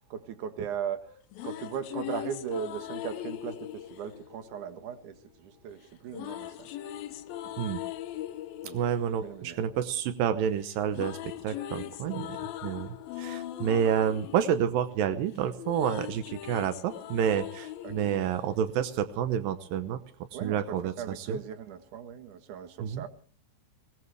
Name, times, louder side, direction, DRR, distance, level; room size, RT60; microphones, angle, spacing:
voice 1, 0.1-6.7 7.4-7.6 8.6-8.8 9.2-9.6 17.8-18.2 20.3-23.1, right 8 dB, 60° right, 8 dB, 2.3 m, -38 dB
sound 1, 1.1-5.2 6.1-10.3 10.6-19.1, left 13 dB, 70° left, 2.5 m, -40 dB
voice 2, 8.7-11.2 11.4-20.0 20.4-21.4 22.8-23.1, right 9 dB, 85° right, 10 dB, 2.0 m, -29 dB
22.0 x 19.5 x 3.3 m, 0.41 s
omnidirectional pair, 5.2 m